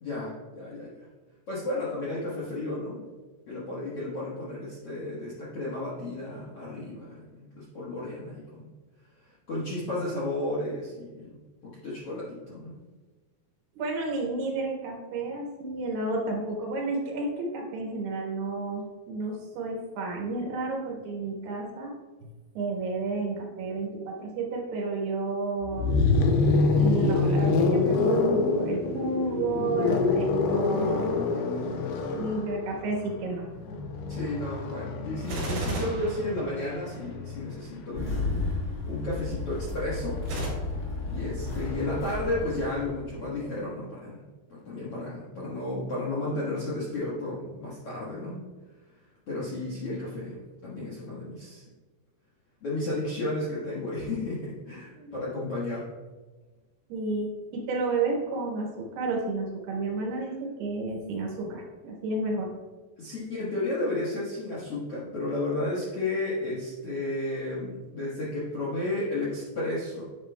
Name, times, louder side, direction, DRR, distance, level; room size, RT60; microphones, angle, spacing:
voice 1, 0.0-1.1 1.5-3.0 3.5-8.7 9.5-11.4 11.8-12.8 34.1-38.3 38.8-40.2 41.0-44.2 44.5-48.4 49.3-51.6 52.6-55.8 63.0-70.0, left 2 dB, 65° left, -8 dB, 1.5 m, -33 dB
voice 2, 13.7-21.9 22.2-25.9 26.7-31.1 32.1-33.5 54.9-55.1 56.9-62.5, right 3 dB, 80° right, 0 dB, 3.3 m, -31 dB
sound 1, 25.6-37.6 38.8-42.4, left 3 dB, 80° left, 2.7 m, -27 dB
Gunshot gunfire, 35.2-37.0 40.2-40.5, right 2 dB, 55° right, 3.7 m, -32 dB
Engine starting, 37.9-43.5, left 3 dB, 25° left, 1.8 m, -33 dB
9.9 x 7.1 x 2.2 m, 1.3 s
omnidirectional pair, 4.7 m